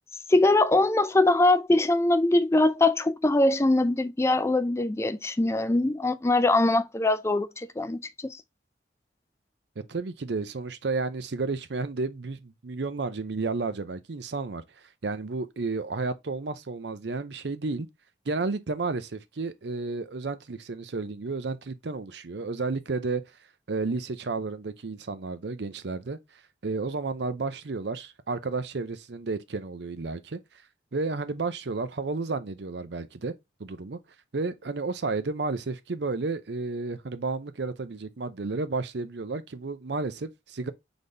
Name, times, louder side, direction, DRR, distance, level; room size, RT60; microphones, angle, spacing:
voice 1, 0.3-8.4, left 2 dB, 15° left, 0.3 m, -22 dB
voice 2, 9.9-14.6 15.0-17.9 18.3-23.2 23.7-26.2 26.6-30.4 30.9-33.3 33.6-34.0 34.3-40.7, right 3 dB, 70° right, 0.6 m, -32 dB
4.0 x 3.4 x 3.9 m
head